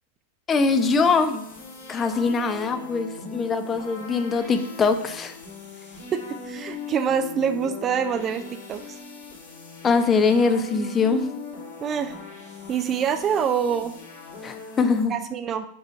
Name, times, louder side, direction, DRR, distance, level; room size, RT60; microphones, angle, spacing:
voice 1, 0.5-1.4 1.9-5.4 9.8-11.3 14.4-15.2, left 4 dB, 20° left, 9 dB, 0.6 m, -22 dB
sound 1, 0.6-15.1, left 4 dB, 55° left, 2.3 m, -40 dB
voice 2, 6.4-8.4 8.7-9.0 11.8-12.2 12.7-13.9 15.1-15.7, right 7 dB, 25° right, 10 dB, 0.4 m, -25 dB
5.2 x 5.0 x 4.7 m, 0.74 s
figure-of-eight pair, 90°, 0 cm